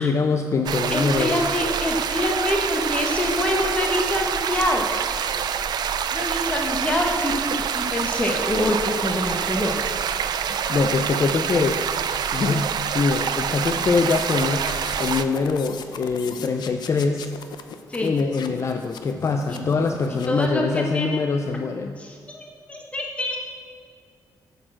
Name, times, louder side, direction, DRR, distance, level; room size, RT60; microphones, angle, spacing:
voice 1, 0.0-1.5 10.7-11.8 12.3-14.7 15.0-17.3 18.0-22.0, left 4 dB, 40° left, 5 dB, 0.5 m, -23 dB
sound 1, 0.7-15.3, right 8 dB, 70° right, 0.5 m, -26 dB
voice 2, 0.9-4.8 6.1-9.7 17.9-18.1 19.5-19.6 20.2-21.2 22.0-23.4, left 1 dB, 15° left, 0 dB, 1.2 m, -25 dB
sound 2, 13.5-20.5, left 6 dB, 75° left, 0.8 m, -39 dB
9.0 x 6.6 x 7.6 m, 2.2 s
wide cardioid pair, 135°, 7 cm